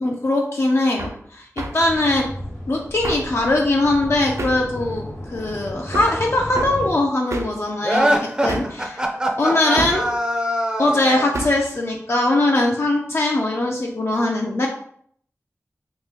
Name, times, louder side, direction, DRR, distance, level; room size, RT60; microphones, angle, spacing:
voice 1, 0.0-2.3 2.7-9.0 9.4-10.1 10.8-14.7, left 2 dB, 55° left, 0 dB, 0.4 m, -21 dB
Hammer, 1.0-1.2 1.6-1.8 3.0-3.3 4.4-4.7 5.9-6.2 6.6-6.8 7.3-7.6 8.5-8.8 9.8-10.1 11.3-11.7, right 2 dB, 70° right, 0.4 m, -29 dB
sound 1, 1.8-6.9, left 1 dB, 90° left, 1.0 m, -34 dB
sound 2, 7.8-11.4, equal, 15° right, 0.5 m, -22 dB
2.9 x 2.4 x 3.7 m, 0.64 s
wide cardioid pair, 70°, 5 cm